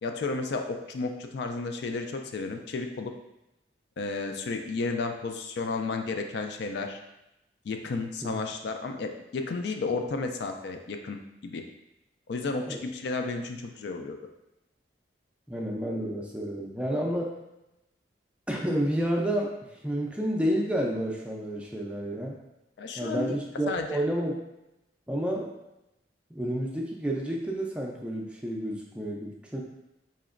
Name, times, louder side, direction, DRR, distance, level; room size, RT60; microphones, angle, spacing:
voice 1, 0.0-3.1 4.0-7.0 7.7-11.2 11.4-11.6 12.3-14.2 22.8-23.3 23.7-24.0, left 3 dB, 65° left, 5 dB, 0.3 m, -32 dB
voice 2, 15.5-17.3 18.5-19.5 19.8-22.4 23.0-24.3 25.1-25.5 26.3-29.6, equal, 5° right, -1 dB, 0.4 m, -30 dB
4.2 x 2.9 x 2.5 m, 0.90 s
head